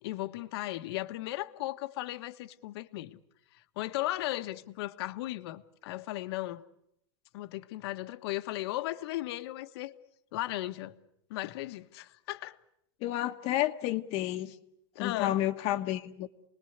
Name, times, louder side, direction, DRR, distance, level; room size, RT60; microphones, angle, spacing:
voice 1, 0.0-3.2 3.8-6.6 7.3-9.9 10.3-10.9 11.3-12.6 14.9-15.4, left 17 dB, 65° left, 1.4 m, -36 dB
voice 2, 13.0-14.5 15.0-16.3, left 14 dB, 45° left, 1.3 m, -30 dB
29.5 x 20.5 x 8.1 m
supercardioid pair, 150°, 14 cm